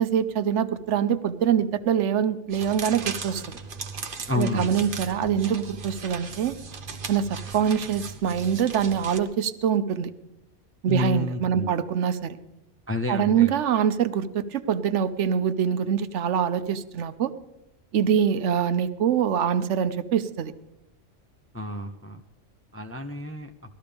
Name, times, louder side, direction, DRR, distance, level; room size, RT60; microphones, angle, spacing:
voice 1, 0.0-3.6 4.4-6.5 7.1-10.1 10.8-12.4 13.1-17.3 17.9-20.5, right 8 dB, 70° right, 12 dB, 1.0 m, -24 dB
sound 1, 2.5-9.2, right 5 dB, 50° right, 1.0 m, -37 dB
voice 2, 4.3-4.8 10.9-11.9 12.9-13.5 21.5-22.2 22.7-23.5, left 3 dB, 15° left, 4 dB, 0.5 m, -30 dB
18.5 x 13.5 x 3.4 m, 0.86 s
omnidirectional pair, 1.3 m